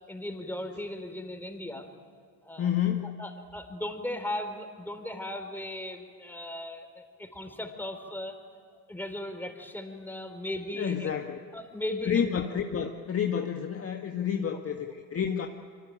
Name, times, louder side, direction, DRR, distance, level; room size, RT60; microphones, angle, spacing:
voice 1, 0.1-1.9 2.4-2.7 3.2-8.4 8.7-11.2 11.5-12.3, left 1 dB, 5° left, 6 dB, 4.5 m, -37 dB
voice 2, 2.6-3.2 10.8-11.4 12.0-15.5, left 8 dB, 30° left, 3 dB, 1.9 m, -29 dB
26.0 x 25.0 x 9.0 m, 2.1 s
hypercardioid pair, 80°, 47 cm